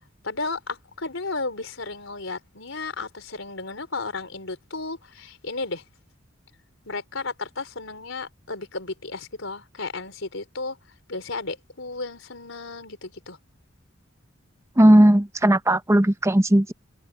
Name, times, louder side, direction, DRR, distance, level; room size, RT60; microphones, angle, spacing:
voice 1, 0.2-5.8 6.9-10.8 11.1-13.4, left 3 dB, 75° left, 4.4 m, -33 dB
voice 2, 14.8-16.7, right 1 dB, 15° right, 0.9 m, -16 dB
head